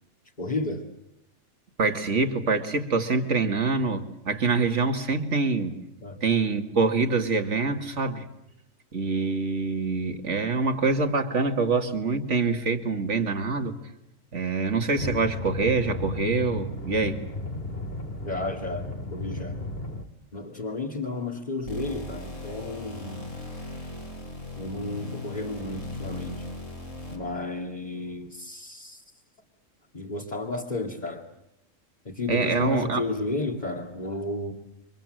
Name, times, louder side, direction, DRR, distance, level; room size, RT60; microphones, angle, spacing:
voice 1, 0.4-0.8 6.0-6.2 18.3-19.6 20.3-23.3 24.6-26.4 27.1-29.0 29.9-31.2 32.0-34.5, left 2 dB, 35° left, -1 dB, 2.4 m, -32 dB
voice 2, 1.8-5.7 6.2-8.2 8.9-13.7 14.3-17.2 32.3-33.0, right 4 dB, 65° right, 7 dB, 2.4 m, -25 dB
sound 1, 15.0-20.1, left 2 dB, 50° left, 2.4 m, -34 dB
sound 2, 21.7-27.4, left 1 dB, 70° left, 5.6 m, -38 dB
29.5 x 25.5 x 7.8 m, 0.83 s
omnidirectional pair, 1.4 m